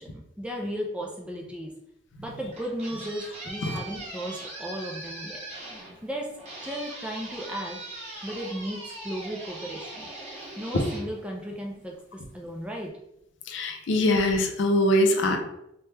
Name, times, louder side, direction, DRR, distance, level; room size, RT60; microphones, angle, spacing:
voice 1, 0.0-1.7 2.2-5.4 6.0-6.4 6.6-7.8 8.2-10.1 10.6-12.9, equal, 5° right, -1 dB, 0.3 m, -35 dB
sound 1, 2.3-11.9, right 2 dB, 35° right, 0.8 m, -41 dB
voice 2, 13.5-15.4, left 1 dB, 60° left, 4 dB, 0.4 m, -22 dB
2.9 x 2.1 x 3.3 m, 0.81 s
head